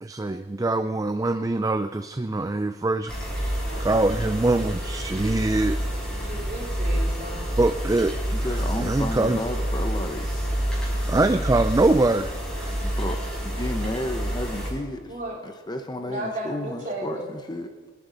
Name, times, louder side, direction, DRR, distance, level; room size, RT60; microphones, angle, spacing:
voice 1, 0.0-3.2 3.4-3.5 3.8-5.8 7.6-8.2 8.5-9.4 11.1-12.3 12.6-13.0, right 2 dB, 20° right, 10 dB, 0.4 m, -23 dB
sound 1, 3.1-14.7, equal, 5° left, 5.8 m, -28 dB
voice 2, 3.7-4.2 4.5-4.6 6.2-7.4 13.8-14.1 15.1-15.4 16.0-17.3, right 1 dB, 40° right, -4 dB, 4.0 m, -35 dB
voice 3, 8.3-10.3 12.8-15.1 15.4-17.7, left 1 dB, 20° left, 5 dB, 0.9 m, -32 dB
28.0 x 10.5 x 4.0 m, 1.5 s
head